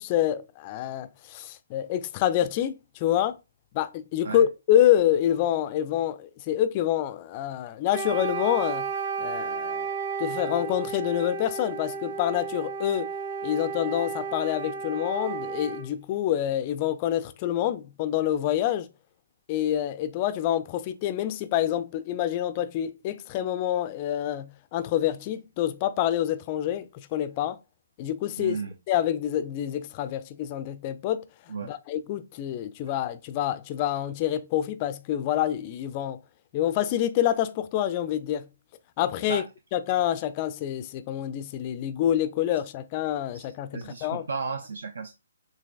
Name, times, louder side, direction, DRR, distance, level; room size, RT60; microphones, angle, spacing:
voice 1, 0.0-3.4 3.7-8.9 9.2-9.9 10.2-13.1 13.4-18.9 19.5-27.6 28.0-28.6 28.9-31.3 31.6-36.2 36.5-38.5 39.0-39.4 39.7-44.3, left 11 dB, 30° left, 0.4 m, -27 dB
Wind instrument woodwind instrument, 7.9-15.9, right 5 dB, 35° right, 1.6 m, -33 dB
voice 2, 28.4-28.7 31.5-31.7 39.3-39.4 43.3-43.5 43.7-45.1, right 4 dB, 60° right, 0.6 m, -34 dB
6.6 x 2.7 x 2.4 m
figure-of-eight pair, 135°, 0 cm